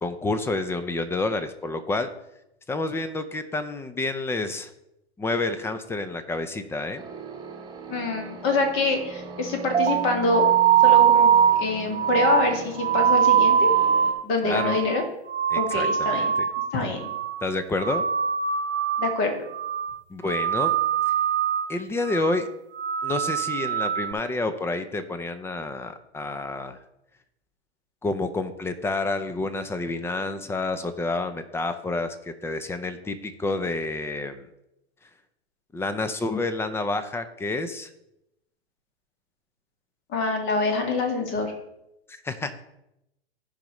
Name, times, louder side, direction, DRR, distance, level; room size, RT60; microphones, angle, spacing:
voice 1, 0.0-2.1 2.7-4.7 5.2-7.0 14.4-14.8 15.5-16.5 17.4-18.0 20.1-20.7 21.7-22.5 23.0-26.8 28.0-34.4 35.7-37.9 42.2-42.6, left 2 dB, 10° left, 10 dB, 0.5 m, -29 dB
sound 1, 7.0-14.1, right 3 dB, 15° right, 1.2 m, -40 dB
voice 2, 7.9-10.5 10.8-11.3 11.6-13.7 14.2-15.0 15.6-16.3 16.7-17.1 19.0-19.3 40.1-41.5, left 3 dB, 40° left, 3 dB, 2.1 m, -25 dB
sound 2, 9.7-16.7 17.0-17.5 17.8-19.2 19.5-20.0 20.3-21.7 22.1-22.4 22.8-24.1, right 9 dB, 85° right, 0.8 m, -22 dB
15.5 x 5.2 x 3.1 m, 0.85 s
hypercardioid pair, 115°, 32 cm